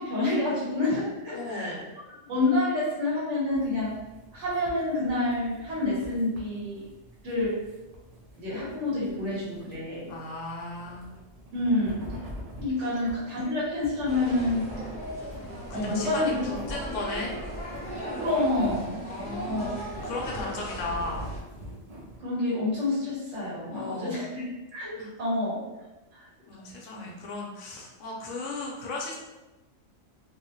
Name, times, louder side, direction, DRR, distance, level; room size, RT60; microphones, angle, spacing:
voice 1, 0.0-1.8 2.1-4.0 4.3-6.8 7.2-7.6 8.4-10.1 11.5-12.0 12.6-14.6 15.7-16.3 18.2-19.0 19.4-19.7 22.2-24.4 24.7-25.6 26.1-26.3, left 2 dB, 60° right, -8 dB, 1.2 m, -28 dB
voice 2, 1.3-1.9 10.1-11.1 15.7-17.3 19.1-21.3 23.7-24.2 24.9-25.1 26.5-29.2, left 2 dB, 70° left, -2 dB, 0.9 m, -36 dB
sound 1, 3.5-22.2, equal, 85° right, 0.3 m, -46 dB
sound 2, 14.1-21.4, equal, 30° left, 0.7 m, -37 dB
2.7 x 2.0 x 2.8 m, 1.1 s
omnidirectional pair, 1.4 m